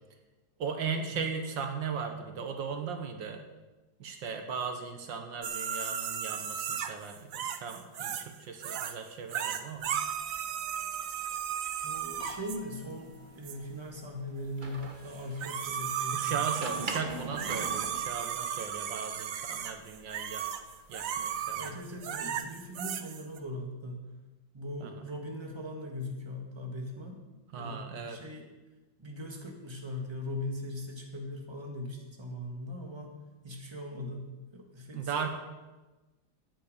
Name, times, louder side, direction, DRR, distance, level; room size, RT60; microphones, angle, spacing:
voice 1, 0.6-3.4 4.0-10.0 16.1-20.4 20.9-21.7 24.8-24.9 27.5-28.2 34.9-35.3, right 6 dB, 75° right, 5 dB, 1.8 m, -37 dB
sound 1, 5.4-8.3 8.6-8.9 9.3-12.6 13.4-13.6 15.1-23.4, right 8 dB, 60° right, 0.9 m, -35 dB
sound 2, 9.8-22.7, right 2 dB, 30° right, 1.2 m, -47 dB
voice 2, 11.8-16.5 21.6-24.1 24.5-27.2 27.5-28.4 29.0-33.1 33.4-35.1, left 1 dB, 15° right, 1 dB, 1.7 m, -40 dB
Piano, 12.2-13.7, left 3 dB, 75° left, 2.0 m, -49 dB
13.5 x 9.7 x 5.2 m, 1.1 s
omnidirectional pair, 2.0 m